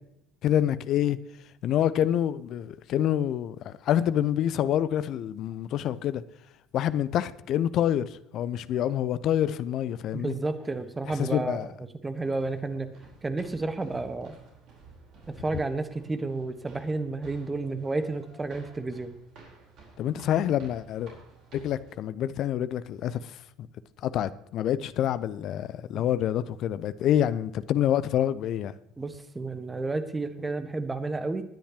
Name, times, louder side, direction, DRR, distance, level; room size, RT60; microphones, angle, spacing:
voice 1, 0.4-1.2 1.6-6.2 6.7-10.4 11.1-11.7 20.0-21.1 21.5-23.4 24.0-28.7, left 11 dB, 50° left, 0.6 m, -27 dB
voice 2, 10.1-11.7 12.0-12.9 13.2-14.3 15.3-19.1 25.9-26.1 29.0-31.4, right 3 dB, 20° right, 1.4 m, -31 dB
sound 1, 12.1-21.9, right 3 dB, 50° right, 4.3 m, -53 dB
19.5 x 10.0 x 3.0 m
figure-of-eight pair, 65°, 0 cm